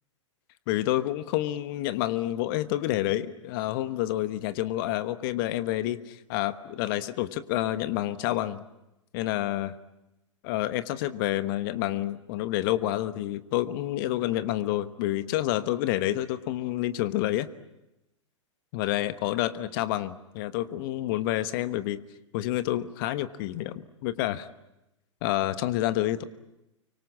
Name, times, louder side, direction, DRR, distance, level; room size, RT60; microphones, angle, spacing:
voice 1, 0.7-8.6 9.1-9.7 10.4-17.5 18.7-22.0 22.3-24.5 25.2-26.2, left 14 dB, 45° left, 14 dB, 1.2 m, -28 dB
25.0 x 24.5 x 8.6 m, 0.91 s
figure-of-eight pair, 100°, 16 cm